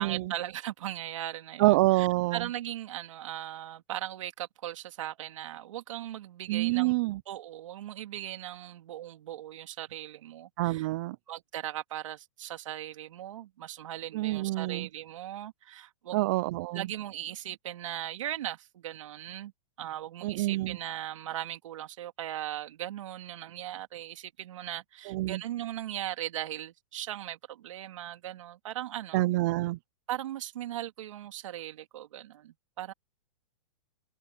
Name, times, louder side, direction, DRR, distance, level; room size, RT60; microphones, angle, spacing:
voice 1, 0.0-7.0 7.3-10.9 11.3-16.3 16.7-19.5 19.8-29.3 30.1-32.9, right 12 dB, 65° right, 3.0 m, -38 dB
voice 2, 1.6-2.4 6.5-7.2 10.6-11.2 14.1-14.9 16.1-16.9 20.2-20.8 25.1-25.4 29.1-29.8, right 19 dB, 35° right, 0.4 m, -27 dB
hypercardioid pair, 160°, 17 cm